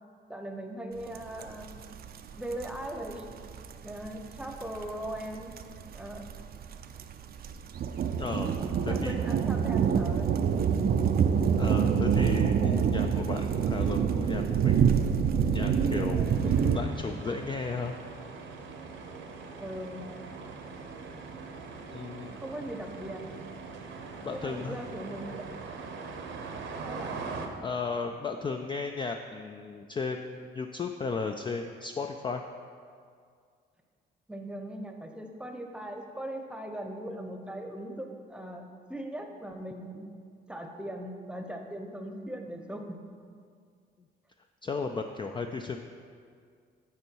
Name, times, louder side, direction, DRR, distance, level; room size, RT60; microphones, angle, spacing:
voice 1, 0.3-1.7 2.4-3.3 3.8-5.5 5.9-6.2 8.9-10.9 16.4-16.7 19.6-20.1 22.3-23.3 24.3-25.7 26.8-27.2 34.3-38.6 38.9-40.0 40.5-43.0, right 1 dB, 5° right, 4 dB, 0.8 m, -39 dB
sound 1, 1.1-1.2 1.4-16.8, right 7 dB, 50° right, 0.5 m, -26 dB
voice 2, 8.1-8.5 8.8-9.2 11.6-14.9 15.5-16.4 16.7-17.9 21.9-22.4 24.2-24.8 27.6-32.4 44.6-45.8, left 4 dB, 25° left, 5 dB, 0.3 m, -35 dB
sound 2, 16.2-27.5, right 4 dB, 70° right, 0.9 m, -42 dB
9.6 x 4.5 x 4.6 m, 2.2 s
cardioid pair, 90°, 20 cm